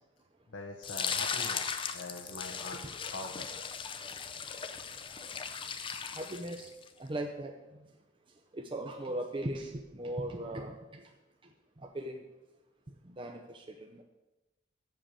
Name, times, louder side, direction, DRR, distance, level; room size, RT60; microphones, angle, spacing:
voice 1, 0.5-3.5, left 2 dB, 80° left, 1 dB, 1.0 m, -43 dB
sound 1, 0.8-6.9, left 6 dB, 25° left, 0.5 m, -38 dB
voice 2, 6.1-6.7 7.0-7.9 8.5-11.1 11.8-12.2 13.0-14.0, right 1 dB, 25° right, 3 dB, 0.6 m, -39 dB
7.7 x 6.6 x 7.3 m, 1.1 s
head